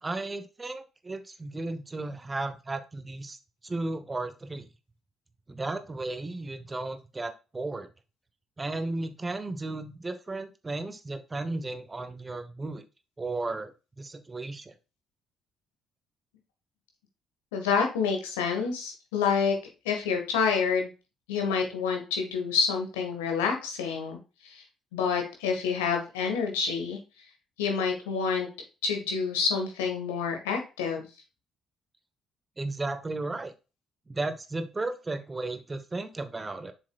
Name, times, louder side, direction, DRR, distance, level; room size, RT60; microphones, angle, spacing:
voice 1, 0.0-3.4 3.6-4.7 5.5-7.9 8.6-12.8 13.2-14.7 32.6-33.5 34.1-36.7, right 2 dB, 25° right, 10 dB, 1.0 m, -34 dB
voice 2, 17.5-19.6 19.8-20.9 21.3-24.2 24.5-24.6 24.9-27.0 27.6-28.5 28.8-31.1, left 6 dB, 75° left, 3 dB, 1.6 m, -28 dB
7.3 x 6.5 x 2.4 m, 0.31 s
figure-of-eight pair, 45°, 0 cm